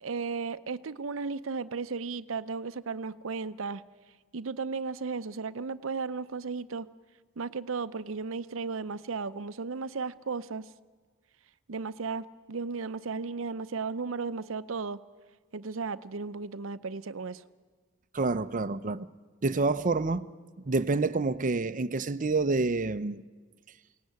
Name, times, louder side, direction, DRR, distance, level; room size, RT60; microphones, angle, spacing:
voice 1, 0.0-3.8 4.3-6.9 7.4-10.7 11.7-15.0 15.5-17.4, right 4 dB, 80° right, 0.7 m, -35 dB
voice 2, 18.1-19.1 19.4-20.2 20.6-23.2, right 3 dB, 40° right, 0.7 m, -28 dB
22.5 x 18.0 x 9.5 m
head